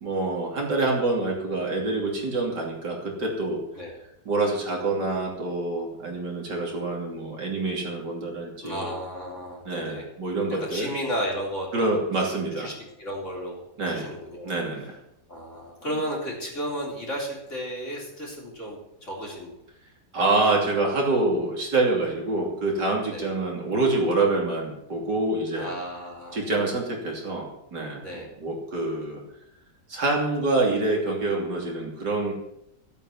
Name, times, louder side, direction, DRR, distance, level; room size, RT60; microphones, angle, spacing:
voice 1, 0.0-3.6 4.3-8.9 9.7-10.9 11.7-12.7 13.8-14.1 14.4-15.0 20.1-25.7 26.3-28.0 28.4-29.2 29.9-32.3, right 2 dB, 60° right, -1 dB, 3.5 m, -26 dB
voice 2, 8.6-10.0 10.6-12.3 12.6-12.7 13.0-14.5 15.3-19.5 20.1-20.4 22.0-22.1 23.1-23.3 25.5-26.4 28.0-28.3, equal, 40° left, -3 dB, 4.2 m, -33 dB
14.0 x 8.8 x 7.3 m, 0.82 s
omnidirectional pair, 2.0 m